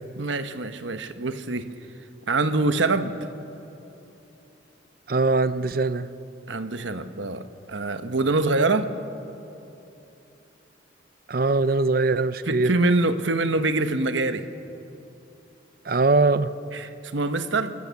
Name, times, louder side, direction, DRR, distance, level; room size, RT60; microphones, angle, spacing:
voice 1, 0.2-1.6 2.3-3.1 6.5-7.4 7.7-8.9 12.5-14.4 16.7-17.7, right 2 dB, 85° right, 9 dB, 1.1 m, -24 dB
voice 2, 5.1-6.1 11.3-12.7 15.9-16.5, right 3 dB, 50° right, 14 dB, 0.6 m, -21 dB
29.5 x 13.5 x 7.1 m, 3.0 s
head